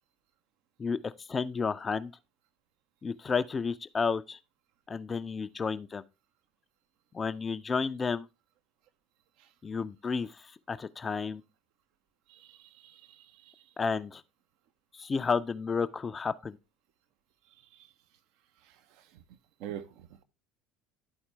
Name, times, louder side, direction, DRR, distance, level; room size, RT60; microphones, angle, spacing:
voice 1, 0.8-2.1 3.0-4.4 4.9-6.0 7.1-8.3 9.6-10.3 10.7-11.4 13.8-14.2 14.9-16.6, left 5 dB, 25° left, 0.4 m, -31 dB
voice 2, 12.3-13.7 17.7-17.9 18.6-19.2 19.6-20.1, right 10 dB, 60° right, 0.7 m, -46 dB
11.5 x 4.3 x 3.3 m
figure-of-eight pair, 65°, 0 cm